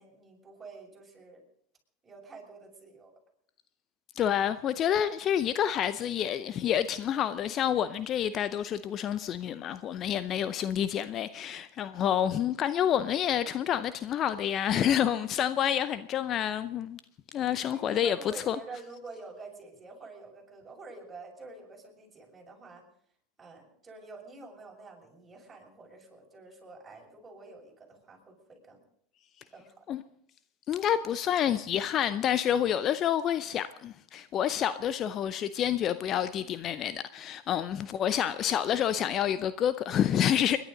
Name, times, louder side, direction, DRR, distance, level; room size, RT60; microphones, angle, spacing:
voice 1, 0.0-1.4 2.0-3.1 17.7-22.8 23.4-28.8 29.5-29.7, right 3 dB, 20° right, 6.4 m, -48 dB
voice 2, 4.2-17.0 17.3-18.6 29.9-30.0 30.7-40.6, left 10 dB, 40° left, 0.6 m, -28 dB
30.0 x 11.0 x 4.0 m
figure-of-eight pair, 80°, 0 cm